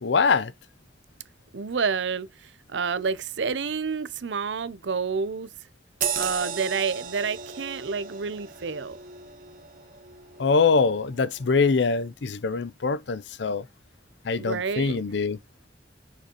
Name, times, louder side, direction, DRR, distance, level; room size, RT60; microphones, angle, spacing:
voice 1, 0.0-0.5 10.4-13.6 14.2-15.4, left 4 dB, 80° left, 0.6 m, -23 dB
voice 2, 1.5-5.5 6.1-9.0 14.4-15.0, right 5 dB, 90° right, 0.6 m, -29 dB
sound 1, 6.0-11.0 11.4-11.6, right 6 dB, 50° right, 1.3 m, -35 dB
6.7 x 5.0 x 2.9 m
head